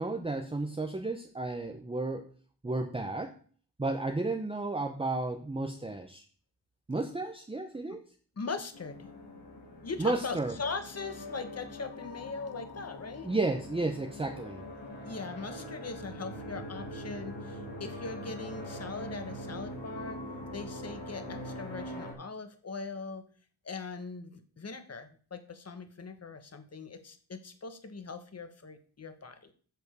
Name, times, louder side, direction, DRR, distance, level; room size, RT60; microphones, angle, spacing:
voice 1, 0.0-2.3 2.6-3.4 3.8-6.2 6.9-8.0 10.0-10.5 13.2-14.6, right 2 dB, 15° right, 4 dB, 0.8 m, -32 dB
voice 2, 8.4-9.1 9.8-13.3 15.0-20.3 20.5-23.2 23.6-29.5, left 4 dB, 35° left, 9 dB, 1.3 m, -40 dB
sound 1, 8.7-22.1, left 1 dB, 80° left, 3.8 m, -43 dB
8.2 x 7.1 x 6.8 m, 0.43 s
wide cardioid pair, 155°, 41 cm